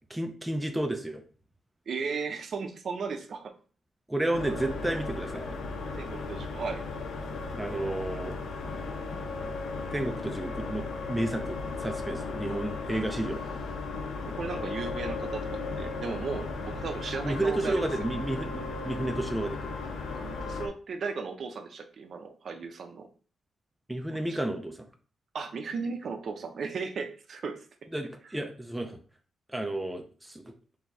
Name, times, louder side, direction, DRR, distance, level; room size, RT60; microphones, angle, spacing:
voice 1, 0.1-1.2 4.1-5.5 7.6-8.5 9.9-13.4 17.2-19.7 23.9-24.9 27.9-29.0 29.5-30.5, right 1 dB, 5° right, 4 dB, 0.4 m, -32 dB
voice 2, 1.9-3.5 5.9-6.8 12.1-12.3 13.9-17.9 20.1-23.1 24.1-24.4 25.3-27.7, right 5 dB, 50° right, 7 dB, 0.6 m, -36 dB
sound 1, 4.3-20.7, left 3 dB, 85° left, 0.7 m, -36 dB
4.0 x 2.8 x 4.6 m, 0.40 s
wide cardioid pair, 165°, 0 cm